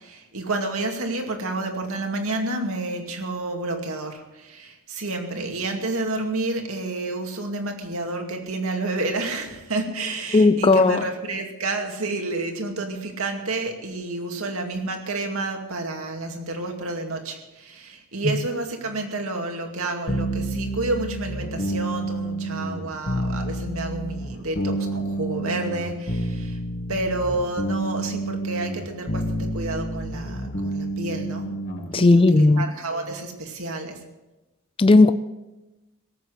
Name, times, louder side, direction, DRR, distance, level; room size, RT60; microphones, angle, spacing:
voice 1, 0.0-26.6 26.9-31.6 31.9-34.0, right 2 dB, 75° right, 2.4 m, -30 dB
voice 2, 10.3-11.0 18.2-18.4 31.9-32.7 34.8-35.1, left 3 dB, 25° left, 0.4 m, -15 dB
sound 1, 20.1-31.9, right 1 dB, 50° left, 2.0 m, -29 dB
18.0 x 8.2 x 8.1 m
head